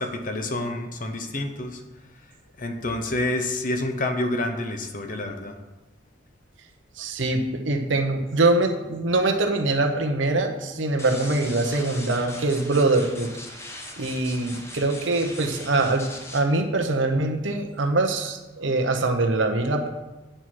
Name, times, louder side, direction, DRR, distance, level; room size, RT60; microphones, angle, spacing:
voice 1, 0.0-1.8 2.6-5.5, left 1 dB, 45° left, 6 dB, 0.9 m, -28 dB
voice 2, 7.0-13.3 14.0-19.9, right 2 dB, 85° right, 4 dB, 1.0 m, -23 dB
sound 1, 11.0-16.4, left 1 dB, 15° left, 0.9 m, -40 dB
8.9 x 5.7 x 4.8 m, 1.1 s
head